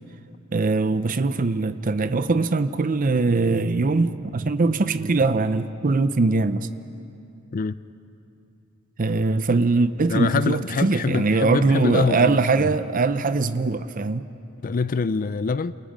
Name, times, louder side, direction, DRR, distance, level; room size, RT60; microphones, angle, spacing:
voice 1, 0.5-6.7 9.0-14.3, right 3 dB, 40° right, 12 dB, 0.6 m, -22 dB
voice 2, 10.1-12.7 14.6-15.7, left 4 dB, 45° left, 15 dB, 0.4 m, -25 dB
28.5 x 28.0 x 5.1 m, 2.8 s
head